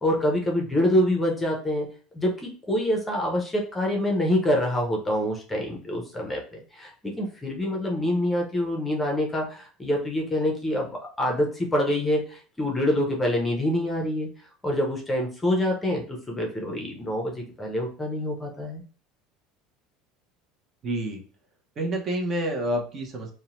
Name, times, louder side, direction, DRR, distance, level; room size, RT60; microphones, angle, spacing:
voice 1, 0.0-1.9 2.1-14.3 14.6-18.8, left 1 dB, 15° left, 0 dB, 0.6 m, -26 dB
voice 2, 20.8-21.2 21.8-23.3, right 1 dB, 35° right, 1 dB, 0.7 m, -28 dB
2.6 x 2.1 x 2.9 m, 0.39 s
supercardioid pair, 130°, 0 cm